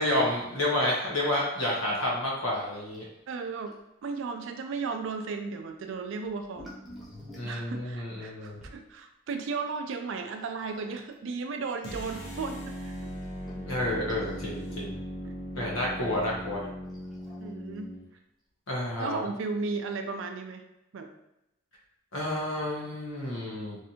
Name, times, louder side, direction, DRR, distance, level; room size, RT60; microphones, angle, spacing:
voice 1, 0.0-3.0 7.4-8.6 13.6-14.9 15.5-16.7 18.7-19.2 22.1-23.8, left 1 dB, 80° left, -4 dB, 1.1 m, -30 dB
sound 1, 1.7-2.3 2.5-2.6 2.9-3.1 3.7-3.8 6.2-8.8 10.5-11.2 12.0-12.1 12.3-12.4 13.0-14.7 16.9-17.8 19.0-19.1 19.7-19.8, left 1 dB, ahead, 0.8 m, -48 dB
voice 2, 3.3-3.8 4.0-6.7 7.4-13.1 14.7-14.8 15.2-15.9 17.4-17.9 19.0-20.6 20.9-21.1, right 4 dB, 65° right, 6 dB, 0.4 m, -35 dB
sound 2, 11.8-18.1, equal, 55° left, 0.8 m, -39 dB
3.2 x 2.6 x 2.9 m, 0.89 s
head